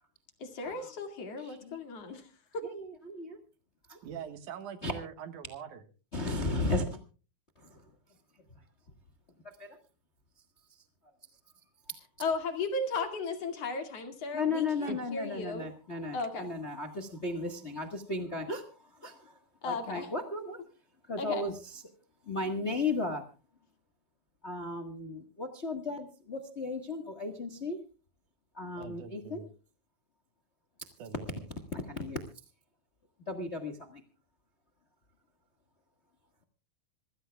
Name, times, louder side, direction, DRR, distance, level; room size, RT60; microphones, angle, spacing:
voice 1, 0.4-2.3 2.5-2.6 12.2-15.7 16.1-16.5 19.6-20.1 21.2-21.4, left 3 dB, 55° left, 6 dB, 3.2 m, -35 dB
voice 2, 1.4-1.8 2.6-3.4 3.9-4.0 4.8-4.9 6.1-7.0 7.6-7.8 9.6-9.7 11.9-12.0 14.3-19.4 19.6-20.6 21.1-21.8 22.3-23.2 24.4-27.8 28.5-29.4 31.7-32.2 33.3-34.0, left 3 dB, 35° left, 8 dB, 1.2 m, -35 dB
voice 3, 4.0-5.8 14.9-15.0 28.8-29.5 31.0-31.4, right 7 dB, 85° right, 9 dB, 2.9 m, -43 dB
26.5 x 15.5 x 2.3 m, 0.36 s
omnidirectional pair, 3.5 m